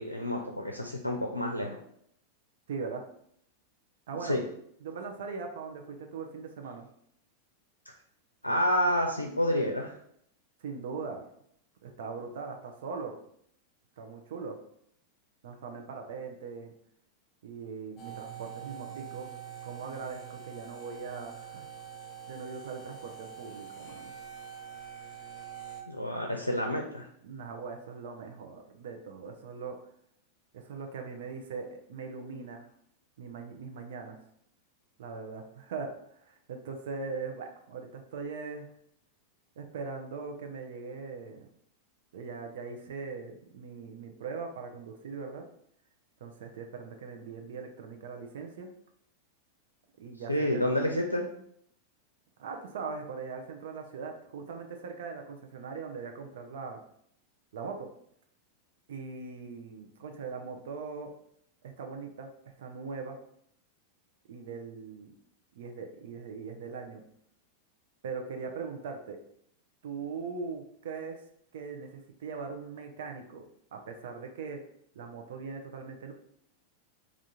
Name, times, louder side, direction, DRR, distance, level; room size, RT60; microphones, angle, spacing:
voice 1, 0.0-1.8 4.2-4.4 8.4-9.9 25.9-27.1 50.3-51.2, equal, 90° left, 1 dB, 0.5 m, -29 dB
voice 2, 2.7-3.1 4.1-4.4 4.8-6.9 10.6-11.2 11.8-13.1 14.0-14.6 15.4-16.7 17.4-19.3 19.6-21.7 22.3-24.1 27.2-29.8 30.5-32.6 33.2-34.2 35.0-38.7 39.6-41.5 42.1-45.4 46.2-48.7 50.0-50.6 52.4-56.8 57.5-57.9 58.9-61.1 61.6-63.2 64.3-65.1 65.6-67.0 68.0-69.2 69.8-71.2 71.5-73.4 73.7-74.6 74.9-76.1, right 5 dB, 60° right, 4 dB, 0.5 m, -40 dB
sound 1, 18.0-25.8, right 8 dB, 30° left, 0.9 m, -45 dB
3.5 x 2.4 x 4.2 m, 0.69 s
figure-of-eight pair, 90°, 0 cm